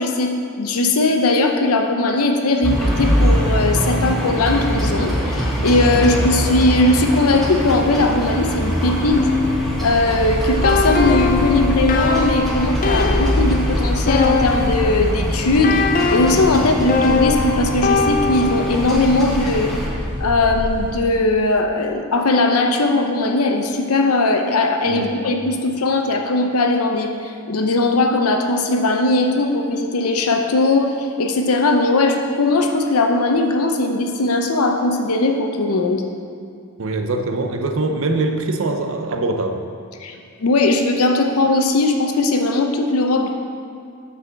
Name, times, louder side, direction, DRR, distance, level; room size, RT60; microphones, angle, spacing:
voice 1, 0.0-9.2 9.8-15.8 16.1-19.7 20.2-36.0 40.0-40.1 40.4-43.3, left 2 dB, 85° left, 4 dB, 0.7 m, -19 dB
Laying Block Paving, 2.6-19.9, equal, ahead, 1.1 m, -23 dB
sound 1, 9.1-15.0 15.6-18.8, left 4 dB, 40° left, 0.4 m, -22 dB
sound 2, 10.2-20.9, equal, 20° right, 1.6 m, -28 dB
voice 2, 36.8-39.7, right 2 dB, 60° right, 6 dB, 0.6 m, -23 dB
6.2 x 4.9 x 6.8 m, 2.4 s
head